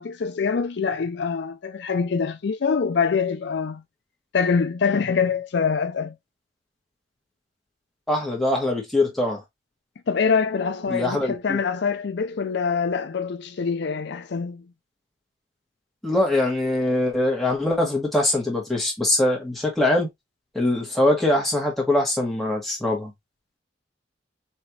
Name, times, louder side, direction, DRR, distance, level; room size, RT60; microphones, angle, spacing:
voice 1, 0.0-3.8 4.3-6.1 10.1-14.6, left 5 dB, 60° left, 0.5 m, -24 dB
voice 2, 8.1-9.4 10.9-11.6 16.0-20.1 20.5-23.1, left 1 dB, ahead, 1.8 m, -22 dB
4.3 x 3.3 x 3.0 m
head